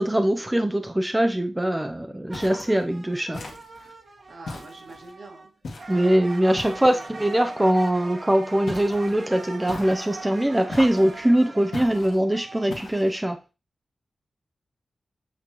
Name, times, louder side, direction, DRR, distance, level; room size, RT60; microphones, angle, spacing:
voice 1, 0.0-3.4 5.9-13.4, right 1 dB, 10° right, 0.5 m, -22 dB
sound 1, 2.3-2.8 3.3-3.9 4.5-5.1 5.6-6.0 6.6-7.1 8.7-9.2 9.7-10.2 10.7-11.2 11.7-12.2 12.7-13.2, left 3 dB, 85° left, 1.8 m, -38 dB
sound 2, 2.3-5.5 5.8-12.7, right 3 dB, 50° right, 1.2 m, -41 dB
voice 2, 4.3-5.5 6.8-7.1 11.2-11.4, right 3 dB, 70° right, 1.9 m, -45 dB
8.3 x 3.8 x 3.0 m
wide cardioid pair, 125°, 0 cm